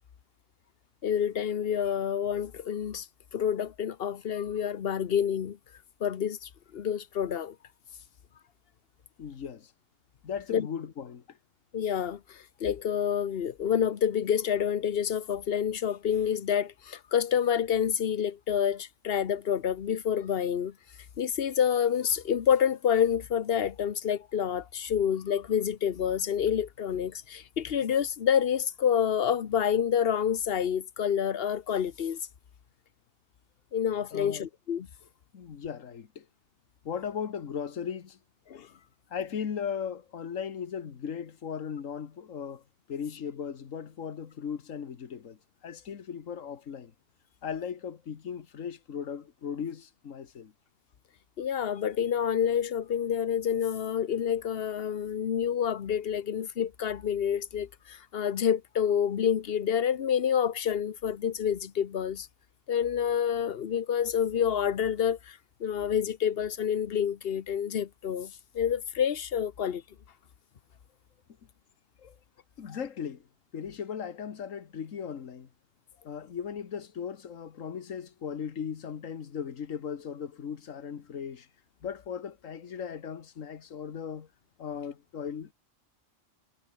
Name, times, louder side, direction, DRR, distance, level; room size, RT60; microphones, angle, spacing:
voice 1, 1.0-3.1 3.3-5.6 6.0-7.5 10.5-10.7 11.7-20.7 21.2-32.2 33.7-34.9 38.5-38.7 51.4-62.3 62.7-69.8, left 8 dB, 50° left, 1.0 m, -28 dB
voice 2, 9.2-9.7 10.2-11.4 34.1-34.4 35.3-36.3 36.9-38.2 39.1-42.6 42.9-46.9 47.4-50.5 72.0-72.2 72.6-73.2 73.5-75.5 76.1-81.5 81.8-84.3 84.6-85.5, left 7 dB, 75° left, 1.7 m, -37 dB
omnidirectional pair, 1.4 m